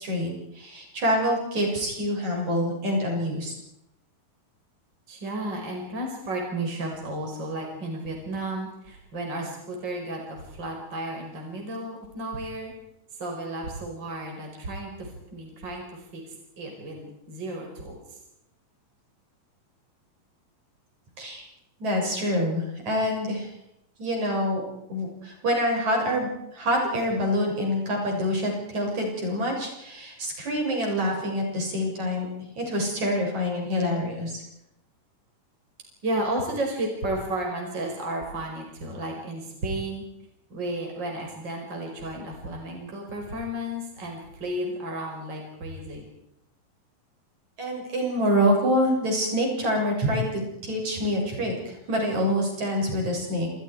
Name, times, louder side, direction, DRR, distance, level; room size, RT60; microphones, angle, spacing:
voice 1, 0.0-3.6 21.2-21.4 21.8-23.5 24.0-24.6 24.9-32.3 32.6-34.4 47.6-53.5, equal, 55° right, 0 dB, 8.6 m, -26 dB
voice 2, 5.1-12.7 13.1-18.2 36.0-40.0 40.5-46.0, right 1 dB, 30° right, 1 dB, 5.8 m, -33 dB
29.0 x 28.5 x 4.9 m, 0.83 s
omnidirectional pair, 4.0 m